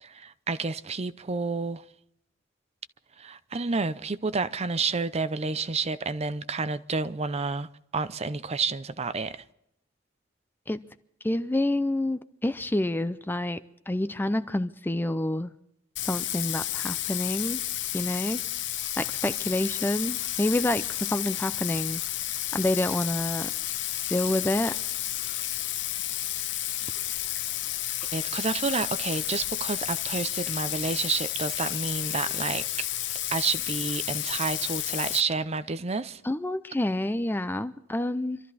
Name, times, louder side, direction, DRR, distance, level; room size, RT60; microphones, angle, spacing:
voice 1, 0.0-1.8 3.2-9.4 28.1-32.9 33.3-36.2, right 4 dB, 35° right, 0.6 m, -30 dB
voice 2, 11.2-15.5 16.1-17.6 17.9-18.4 19.0-22.0 22.5-23.5 24.1-24.7 36.2-38.4, left 1 dB, 10° left, 0.5 m, -28 dB
Bathtub (filling or washing), 16.0-35.2, left 13 dB, 65° left, 0.8 m, -31 dB
26.0 x 13.5 x 4.1 m
head